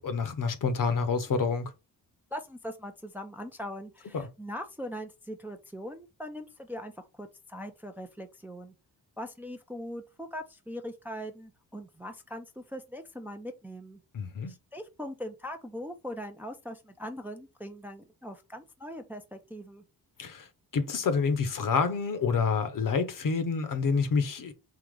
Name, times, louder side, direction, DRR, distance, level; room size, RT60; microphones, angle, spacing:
voice 1, 0.0-1.7 4.1-4.3 14.1-14.5 20.2-20.5 20.7-24.5, left 5 dB, 55° left, 0.8 m, -28 dB
voice 2, 2.3-8.7 9.2-14.0 14.5-19.8, equal, 5° right, 0.5 m, -41 dB
3.8 x 2.8 x 4.8 m
cardioid pair, 120°, 40 cm